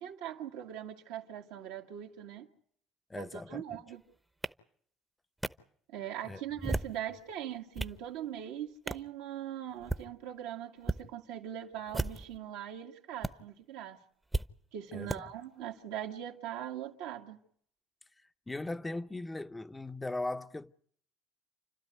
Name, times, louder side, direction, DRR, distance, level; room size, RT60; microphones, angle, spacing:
voice 1, 0.0-2.5 3.1-4.0 5.9-14.0 14.7-17.4, right 11 dB, 85° right, 2.1 m, -41 dB
voice 2, 3.1-3.6 6.2-6.4 14.9-15.3 18.5-20.7, left 2 dB, 15° left, 0.8 m, -38 dB
sound 1, 4.4-4.5 5.4-5.5 6.5-7.0 7.5-8.0 8.9-9.1 9.7-10.1 10.8-11.0 11.9-12.4 13.2-13.3 14.3-14.5 15.1-15.2, right 2 dB, 10° right, 0.9 m, -34 dB
29.5 x 13.0 x 9.4 m
hypercardioid pair, 65°, 0 cm